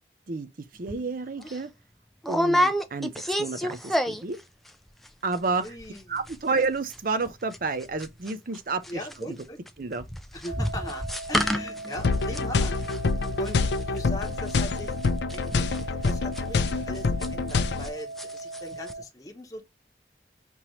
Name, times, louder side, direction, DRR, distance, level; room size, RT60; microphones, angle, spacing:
voice 1, 0.7-1.7 2.3-4.4 5.2-5.6 6.1-9.0 9.8-10.0, right 4 dB, 50° right, 0.6 m, -30 dB
sound 1, 0.9-1.0 1.4-1.6 2.2-4.4 4.7-5.1 5.3-5.4 5.6-6.0 6.3-8.6 8.8-17.9 18.2-18.6 18.9-19.0, equal, ahead, 0.3 m, -29 dB
voice 2, 5.6-6.2 8.9-9.6 10.3-12.8 13.4-13.6 13.9-14.9 15.3-15.6 15.9-19.6, left 1 dB, 20° left, 0.8 m, -39 dB
sound 2, 10.5-19.1, right 2 dB, 75° right, 1.5 m, -39 dB
sound 3, 12.0-17.9, left 4 dB, 70° left, 0.4 m, -26 dB
5.3 x 2.9 x 3.0 m
head